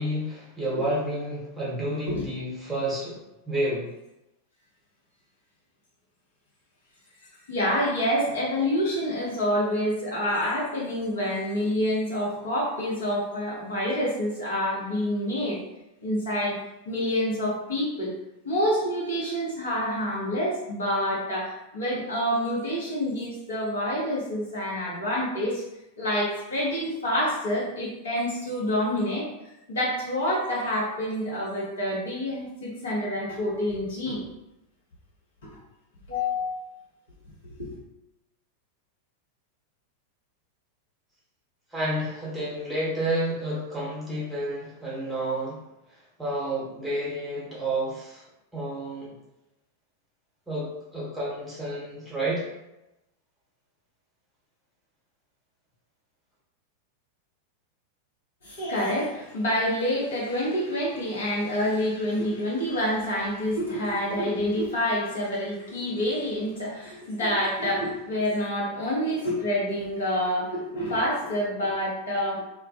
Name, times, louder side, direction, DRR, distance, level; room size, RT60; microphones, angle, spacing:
voice 1, 0.0-3.1 3.5-3.9 41.7-45.6 46.2-48.2 48.5-49.1 50.5-52.5, right 1 dB, 5° right, -8 dB, 1.0 m, -30 dB
voice 2, 7.5-15.6 16.0-16.6 16.8-18.1 18.4-25.6 26.0-34.2 35.4-35.5 36.1-36.8 37.4-37.7 58.4-72.4, equal, 65° left, -6 dB, 0.9 m, -27 dB
2.2 x 2.1 x 2.7 m, 0.91 s
figure-of-eight pair, 90°, 0 cm